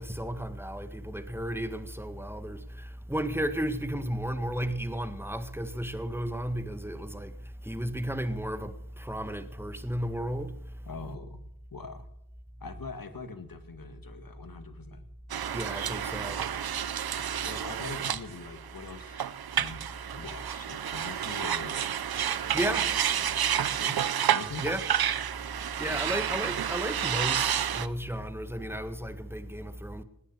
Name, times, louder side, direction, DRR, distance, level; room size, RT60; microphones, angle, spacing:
voice 1, 0.0-10.9 15.5-16.4 22.5-22.9 24.6-24.8 25.8-30.0, equal, 5° right, 1.8 m, -34 dB
voice 2, 10.9-11.4 11.7-12.1 12.6-15.1 16.3-16.4 17.4-19.2 19.5-21.8 22.6-22.9 23.2-24.0 24.3-24.7 26.1-26.2, left 4 dB, 65° left, 2.1 m, -43 dB
sound 1, 15.3-27.9, right 9 dB, 90° right, 0.7 m, -30 dB
19.5 x 9.9 x 6.8 m
cardioid pair, 45°, 36 cm